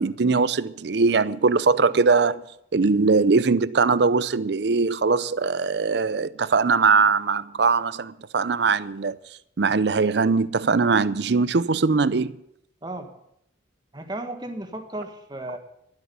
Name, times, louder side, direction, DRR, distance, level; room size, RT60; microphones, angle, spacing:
voice 1, 0.0-2.4 2.7-9.2 9.6-12.3, right 4 dB, 60° right, 0.6 m, -21 dB
voice 2, 13.9-15.6, right 1 dB, 20° right, 1.5 m, -34 dB
12.5 x 8.1 x 9.2 m
head